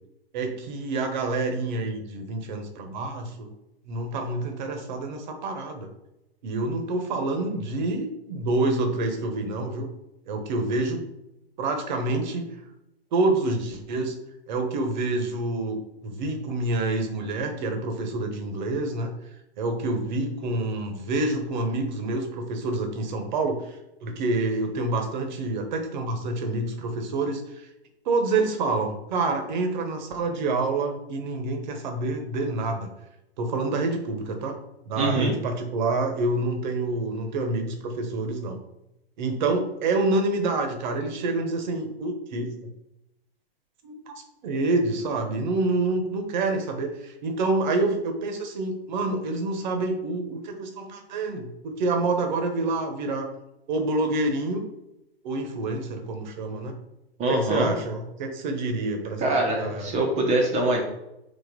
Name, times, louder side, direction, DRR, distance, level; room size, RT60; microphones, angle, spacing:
voice 1, 0.3-3.5 3.9-5.9 6.4-9.9 10.3-11.1 11.6-12.5 13.1-14.1 14.5-19.1 19.6-27.7 28.0-32.9 33.4-34.6 34.9-38.6 39.2-42.7 43.8-53.3 53.7-54.6 55.2-56.8 57.3-59.9, right 2 dB, 45° right, 4 dB, 1.4 m, -27 dB
voice 2, 34.9-35.3 57.2-57.7 59.2-60.8, right 1 dB, 20° right, 0 dB, 1.2 m, -23 dB
4.3 x 4.2 x 5.3 m, 0.89 s
hypercardioid pair, 125°, 31 cm